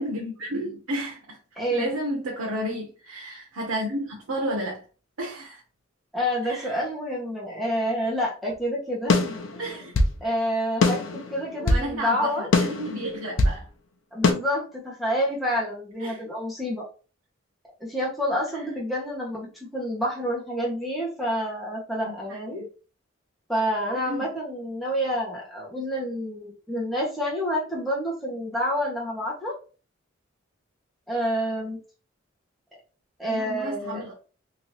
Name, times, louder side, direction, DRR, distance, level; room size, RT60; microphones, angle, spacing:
voice 1, 0.0-1.4 1.7-4.8 5.2-5.6 6.5-6.8 9.6-9.9 11.6-13.7 16.0-16.2 22.0-22.1 22.5-22.6 24.1-24.3 33.3-34.1, right 1 dB, 90° right, 0.8 m, -31 dB
voice 2, 1.6-1.9 6.1-9.9 10.2-12.5 14.1-16.8 17.8-22.7 23.5-29.5 31.1-31.8 33.2-34.0, equal, ahead, 0.8 m, -28 dB
sound 1, 9.1-10.2 10.8-11.9 12.5-13.6 14.2-14.3, left 2 dB, 70° left, 0.5 m, -22 dB
3.0 x 2.6 x 2.9 m
head